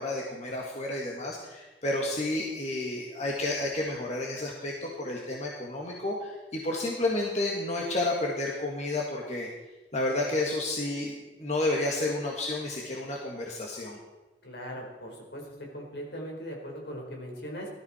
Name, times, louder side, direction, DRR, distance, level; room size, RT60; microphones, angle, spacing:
voice 1, 0.0-9.5 9.9-14.0, left 2 dB, 40° left, -2 dB, 1.8 m, -31 dB
voice 2, 14.4-15.5 15.7-17.7, equal, 70° left, 0 dB, 4.5 m, -39 dB
18.5 x 13.5 x 4.4 m, 1.1 s
head